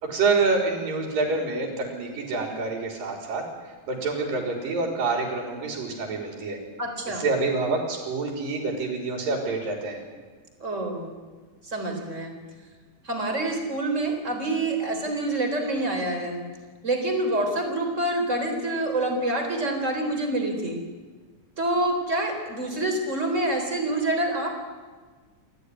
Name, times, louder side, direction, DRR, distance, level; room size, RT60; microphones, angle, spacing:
voice 1, 0.0-3.4 3.9-6.6 7.1-10.0, right 3 dB, 70° right, 2 dB, 5.0 m, -27 dB
voice 2, 6.8-7.3 10.6-11.1 11.6-12.3 13.0-16.4 16.8-20.8 21.6-24.5, right 1 dB, 20° right, 4 dB, 3.8 m, -27 dB
28.5 x 13.5 x 9.7 m, 1.4 s
omnidirectional pair, 4.1 m